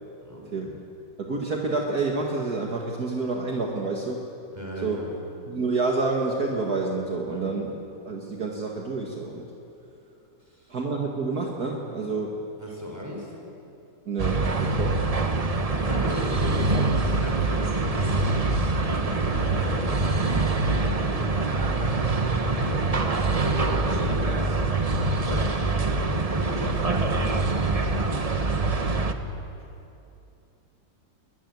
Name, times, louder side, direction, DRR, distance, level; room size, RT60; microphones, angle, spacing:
voice 1, 0.2-0.8 4.5-5.1 7.3-7.5 10.4-10.8 12.6-13.4 14.9-15.1 15.7-29.1, left 1 dB, 10° right, -1 dB, 6.1 m, -37 dB
voice 2, 1.2-4.2 4.8-5.0 5.5-7.7 8.1-9.5 10.7-12.4 14.1-15.1, right 3 dB, 55° right, 0 dB, 2.3 m, -28 dB
sound 1, 14.2-29.1, right 3 dB, 25° right, 1.0 m, -24 dB
21.5 x 21.5 x 9.6 m, 2.8 s
omnidirectional pair, 2.0 m